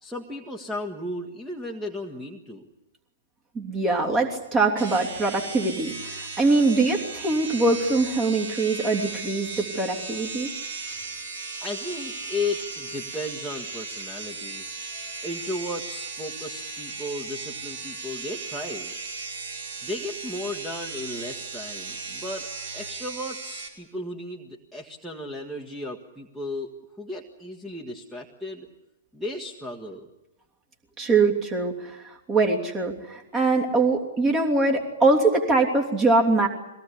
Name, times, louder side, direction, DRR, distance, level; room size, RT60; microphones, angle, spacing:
voice 1, 0.0-2.7 11.6-14.6 15.2-18.9 19.8-22.5 22.7-26.7 27.0-28.7 29.1-30.1, left 2 dB, 5° right, 2 dB, 1.7 m, -35 dB
voice 2, 3.5-10.5 31.0-36.5, right 3 dB, 25° right, 0 dB, 3.2 m, -23 dB
sound 1, 4.8-23.7, right 3 dB, 65° right, 5.3 m, -36 dB
22.5 x 18.0 x 10.0 m, 0.94 s
hypercardioid pair, 120°, 0 cm